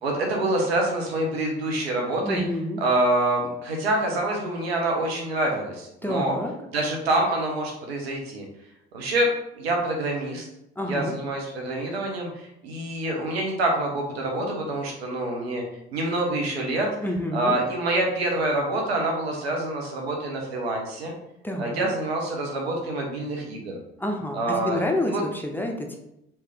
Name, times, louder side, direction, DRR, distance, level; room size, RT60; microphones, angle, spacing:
voice 1, 0.0-2.4 2.8-6.3 6.7-8.4 8.9-10.5 10.9-15.6 15.9-16.9 17.3-21.1 21.6-23.8 24.3-25.2, right 2 dB, 85° right, 1 dB, 0.6 m, -26 dB
voice 2, 2.2-2.8 6.0-6.5 10.8-11.2 17.0-17.6 21.4-21.9 24.0-26.0, left 1 dB, 5° left, 1 dB, 0.6 m, -28 dB
3.2 x 2.8 x 3.4 m, 0.83 s
figure-of-eight pair, 45°, 30 cm